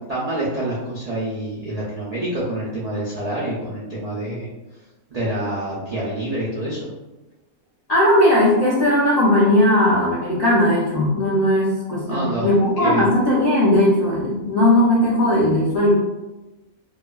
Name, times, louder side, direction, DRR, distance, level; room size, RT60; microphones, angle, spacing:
voice 1, 0.1-4.5 5.1-6.9 11.9-12.5 12.8-13.1, right 1 dB, 65° right, -7 dB, 0.4 m, -27 dB
voice 2, 7.9-15.9, left 1 dB, 60° left, -7 dB, 0.4 m, -17 dB
2.8 x 2.3 x 2.2 m, 1.0 s
omnidirectional pair, 1.4 m